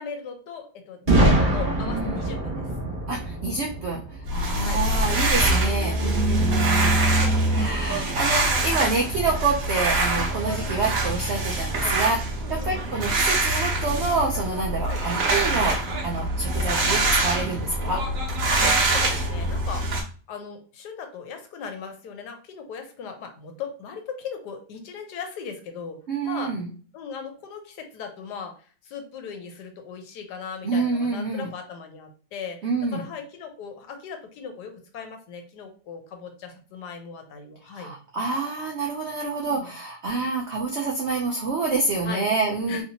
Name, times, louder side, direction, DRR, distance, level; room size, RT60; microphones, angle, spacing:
voice 1, 0.0-2.7 4.6-4.8 6.9-7.5 9.9-10.1 10.6-10.9 11.8-12.0 12.4-12.9 14.9-15.0 17.8-18.0 18.9-19.9 20.3-26.5 26.9-38.0 39.4-39.7 42.0-42.2 42.7-42.8, left 6 dB, 75° left, 5 dB, 1.3 m, -38 dB
Boom, 1.1-4.9, right 1 dB, 35° right, 1.1 m, -24 dB
voice 2, 1.8-2.2 3.1-7.0 7.5-12.2 12.5-18.0 26.1-26.7 30.6-31.5 32.6-33.0 37.7-42.8, right 3 dB, 85° right, 1 dB, 0.6 m, -27 dB
sound 1, 4.3-20.0, right 2 dB, 55° right, 1.1 m, -24 dB
3.2 x 2.7 x 2.7 m, 0.40 s
omnidirectional pair, 1.8 m